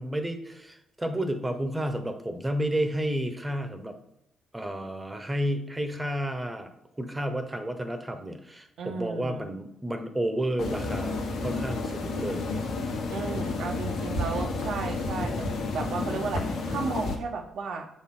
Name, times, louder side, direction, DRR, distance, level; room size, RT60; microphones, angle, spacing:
voice 1, 0.0-4.0 4.5-12.4, right 1 dB, 15° right, 7 dB, 0.9 m, -31 dB
voice 2, 8.8-9.5 13.1-17.9, right 5 dB, 70° right, 4 dB, 1.0 m, -34 dB
sound 1, 10.6-17.2, left 3 dB, 75° left, 1.1 m, -31 dB
6.8 x 4.4 x 3.8 m, 0.83 s
cardioid pair, 90°, 0 cm